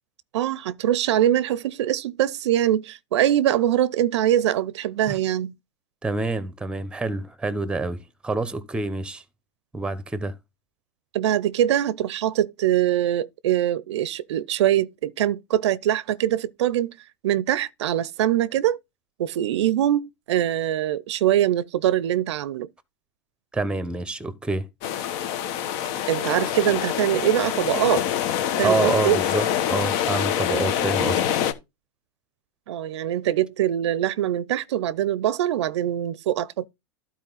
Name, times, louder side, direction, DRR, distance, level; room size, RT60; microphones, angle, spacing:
voice 1, 0.3-5.5 11.1-16.9 17.2-18.8 19.2-22.7 26.1-28.0 28.6-29.2 32.7-36.7, right 12 dB, 80° right, 0.5 m, -23 dB
voice 2, 6.0-9.2 9.7-10.4 23.5-24.7 28.6-31.2, right 3 dB, 5° right, 1.0 m, -27 dB
sound 1, 24.8-31.5, left 10 dB, 55° left, 1.2 m, -25 dB
12.0 x 4.4 x 4.0 m
hypercardioid pair, 115°, 14 cm